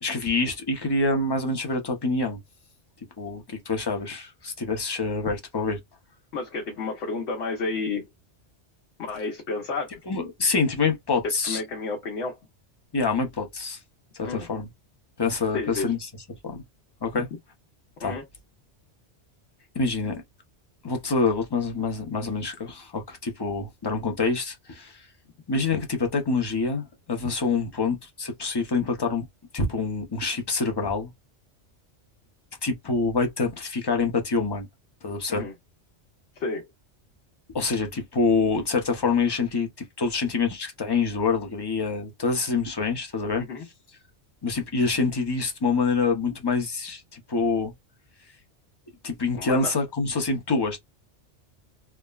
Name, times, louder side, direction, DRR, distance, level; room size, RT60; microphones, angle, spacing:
voice 1, 0.0-2.4 3.2-5.8 10.1-11.6 12.9-13.8 14.1-14.7 15.2-16.0 16.4-16.6 17.0-17.3 18.0-18.2 19.7-20.2 20.8-25.1 25.5-29.2 29.5-31.1 32.6-34.7 35.0-35.5 37.5-43.4 44.4-47.7 49.0-50.8, left 4 dB, 25° left, 0.6 m, -26 dB
voice 2, 6.3-8.1 9.1-9.9 11.5-12.4 14.2-14.5 15.5-15.9 18.0-18.2 35.3-35.5 36.3-36.6 43.4-43.6 49.4-49.7, left 3 dB, 70° left, 1.0 m, -31 dB
3.4 x 2.0 x 2.3 m
omnidirectional pair, 1.2 m